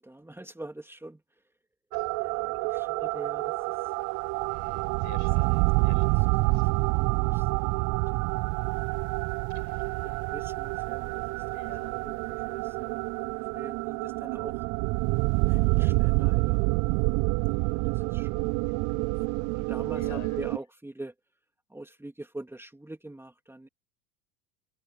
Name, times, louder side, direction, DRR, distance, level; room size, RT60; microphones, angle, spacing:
voice 1, 0.0-1.4 2.2-3.9 6.2-6.3 6.6-8.3 9.8-13.0 13.5-14.7 15.5-16.6 17.5-21.1 21.7-23.7, right 1 dB, 5° right, 2.9 m, -45 dB
sound 1, 1.9-20.6, right 29 dB, 45° right, 0.5 m, -27 dB
voice 2, 4.5-6.7 9.5-10.2 11.5-12.0 19.9-20.4, left 13 dB, 40° left, 6.5 m, -50 dB
open air
hypercardioid pair, 90°, 44 cm